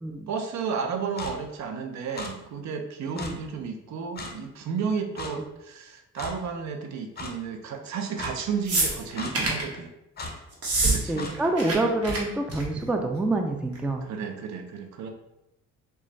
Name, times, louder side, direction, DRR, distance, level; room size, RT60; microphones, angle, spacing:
voice 1, 0.3-9.9 10.8-11.3 14.0-15.1, right 6 dB, 65° right, 5 dB, 0.6 m, -32 dB
Clock, 1.2-1.3 2.2-2.3 3.2-3.3 4.2-4.3 5.2-5.3 6.2-6.3 7.2-7.3 8.2-8.3 9.2-9.3 10.2-10.3 11.2-11.3, left 3 dB, 35° left, 0.6 m, -36 dB
sound 1, 8.7-9.7 10.5-11.0 11.2-11.8 12.0-12.2 12.5-12.8 13.8-13.9, right 2 dB, 50° right, 1.1 m, -25 dB
voice 2, 11.1-14.1, right 2 dB, 5° right, 4 dB, 0.3 m, -27 dB
3.1 x 2.3 x 3.8 m, 0.88 s
cardioid pair, 90°, 30 cm